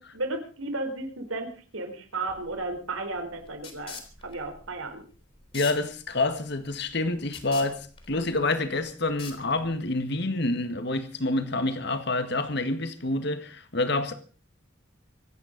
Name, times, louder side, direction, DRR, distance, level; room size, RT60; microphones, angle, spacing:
voice 1, 0.0-5.0, right 2 dB, 85° right, 4.3 m, -34 dB
sound 1, 2.3-9.9, left 5 dB, 30° left, 3.5 m, -46 dB
voice 2, 5.5-14.1, left 2 dB, 55° left, 1.8 m, -28 dB
25.0 x 9.6 x 5.3 m
head